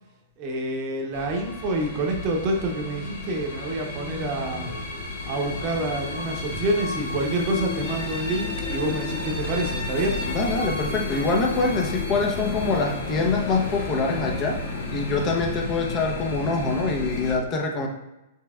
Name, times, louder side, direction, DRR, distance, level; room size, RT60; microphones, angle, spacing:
voice 1, 0.4-4.7 5.2-10.2, right 1 dB, 45° right, 2 dB, 0.9 m, -27 dB
sound 1, 1.1-17.3, left 3 dB, 70° left, 1.0 m, -32 dB
voice 2, 10.3-14.6 14.9-17.9, left 3 dB, 30° left, 2 dB, 0.8 m, -25 dB
5.5 x 3.2 x 2.4 m, 0.95 s
hypercardioid pair, 125°, 0 cm